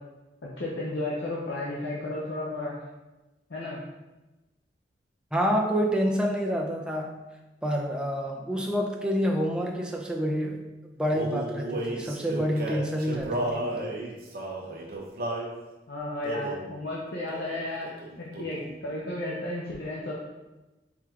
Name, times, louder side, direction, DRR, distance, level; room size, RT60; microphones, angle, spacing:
voice 1, 0.6-2.8 3.5-3.8 15.9-17.9 18.2-20.2, left 1 dB, 90° left, -5 dB, 0.7 m, -33 dB
voice 2, 5.3-7.2 7.6-10.7 11.0-13.9, equal, 5° right, -1 dB, 0.4 m, -28 dB
Male singing, 11.1-15.5 16.2-16.7 17.3-17.6 17.8-18.8, right 1 dB, 55° right, 0.7 m, -33 dB
4.7 x 3.4 x 2.4 m, 1.1 s
head